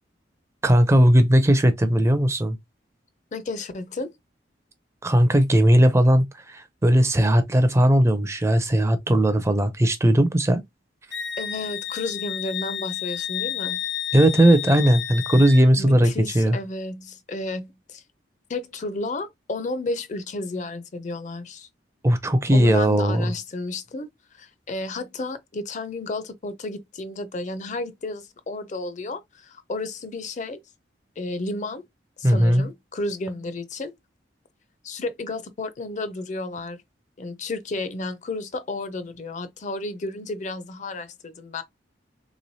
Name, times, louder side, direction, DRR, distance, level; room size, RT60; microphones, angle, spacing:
voice 1, 0.6-2.6 5.0-10.6 14.1-16.6 22.0-23.3 32.2-32.6, right 1 dB, 15° right, 0.4 m, -18 dB
voice 2, 3.3-4.1 11.4-13.8 15.8-18.0 18.5-21.7 22.5-24.1 24.3-30.6 31.2-31.8 32.2-33.9 34.8-36.8 37.2-41.6, left 2 dB, 40° left, 0.5 m, -32 dB
Wind instrument woodwind instrument, 11.1-15.7, left 10 dB, 70° left, 0.8 m, -31 dB
3.5 x 3.1 x 2.6 m
head